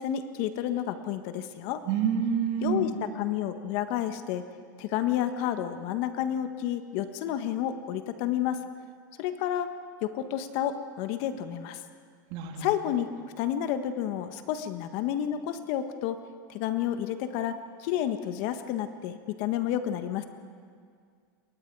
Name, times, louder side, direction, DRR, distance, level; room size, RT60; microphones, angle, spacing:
voice 1, 0.0-1.8 2.6-4.4 4.8-8.6 9.2-9.7 10.0-11.8 12.6-13.1 13.4-16.2 16.5-20.2, left 11 dB, 55° left, 8 dB, 1.5 m, -30 dB
voice 2, 1.9-2.9 12.3-12.7, right 7 dB, 50° right, 2 dB, 3.1 m, -27 dB
27.0 x 22.5 x 4.8 m, 2.1 s
supercardioid pair, 130°, 11 cm